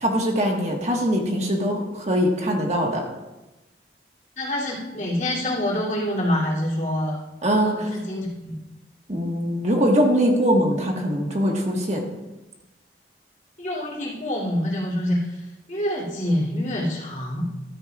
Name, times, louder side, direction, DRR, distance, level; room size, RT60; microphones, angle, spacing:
voice 1, 0.0-3.0 7.4-7.9 9.1-12.1, equal, 40° right, 0 dB, 1.4 m, -22 dB
voice 2, 4.4-7.2 7.7-8.5 13.6-17.4, left 1 dB, 45° left, -4 dB, 2.9 m, -26 dB
14.0 x 13.0 x 2.4 m, 1.0 s
head